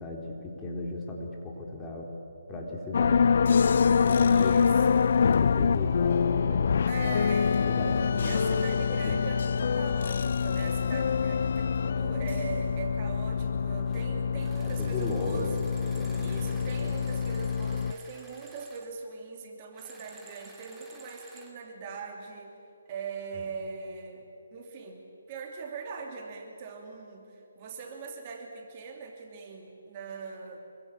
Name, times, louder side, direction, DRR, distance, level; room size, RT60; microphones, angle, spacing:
voice 1, 0.0-2.1 2.5-4.7 5.2-6.6 7.0-9.3 14.6-16.5 16.8-17.0 23.3-23.5, left 2 dB, 10° left, -1 dB, 3.6 m, -37 dB
sound 1, 2.9-17.9, left 6 dB, 55° left, 0.6 m, -25 dB
voice 2, 4.3-5.2 6.8-15.5 16.2-22.6 22.8-24.2 24.5-25.0 25.3-30.6, right 4 dB, 30° right, 2 dB, 2.9 m, -41 dB
sound 2, 13.8-14.1 14.4-18.9 19.7-21.5, right 3 dB, 5° right, 2.5 m, -53 dB
26.5 x 23.0 x 8.7 m, 2.7 s
hypercardioid pair, 160°, 0 cm